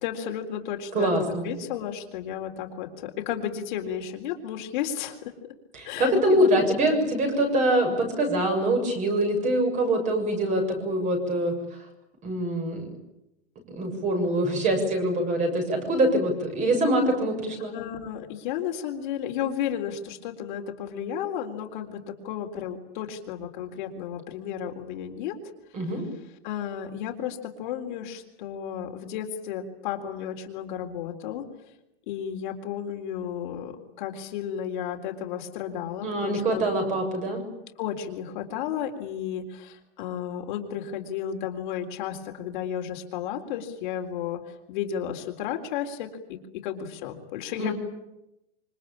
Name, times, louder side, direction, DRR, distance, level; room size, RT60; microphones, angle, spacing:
voice 1, 0.0-1.1 1.4-5.3 5.8-6.7 7.0-7.2 17.7-25.4 26.4-31.4 32.1-36.7 37.8-47.7, left 9 dB, 45° left, 3 dB, 3.8 m, -33 dB
voice 2, 0.9-1.5 5.7-11.6 12.2-12.9 13.7-17.7 25.7-26.0 36.0-37.4 47.6-47.7, right 1 dB, 20° right, 4 dB, 7.2 m, -24 dB
27.5 x 25.0 x 8.8 m, 0.87 s
hypercardioid pair, 160°, 34 cm